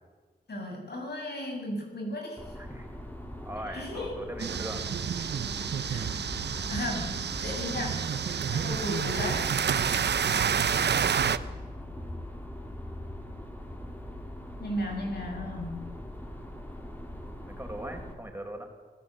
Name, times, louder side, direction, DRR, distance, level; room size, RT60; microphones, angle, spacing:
voice 1, 0.5-2.6 3.7-4.1 5.8-6.3 6.7-8.1 8.5-9.5 14.6-15.9, left 1 dB, 70° left, 1 dB, 7.7 m, -35 dB
sound 1, 2.4-18.1, left 1 dB, 10° left, 3.9 m, -41 dB
voice 2, 2.5-3.0 3.4-4.9 17.4-18.6, right 1 dB, 10° right, 3 dB, 4.8 m, -40 dB
sound 2, 4.4-11.4, right 7 dB, 80° right, 0.9 m, -29 dB
26.0 x 15.5 x 8.1 m, 1.4 s
wide cardioid pair, 75°, 17 cm